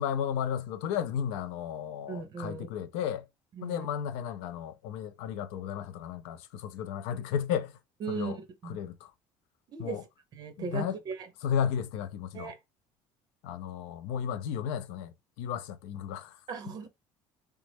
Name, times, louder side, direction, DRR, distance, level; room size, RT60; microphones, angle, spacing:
voice 1, 0.0-3.3 3.6-7.8 8.1-8.4 8.6-9.1 9.8-10.0 10.6-11.0 11.4-12.5 13.4-16.4, left 8 dB, 90° left, 0.4 m, -34 dB
voice 2, 2.1-2.7 3.6-3.9 8.0-8.8 9.7-10.0 10.3-11.3 12.3-12.6 16.5-16.9, right 5 dB, 40° right, 0.5 m, -37 dB
3.1 x 2.1 x 3.2 m
cardioid pair, 140°, 10 cm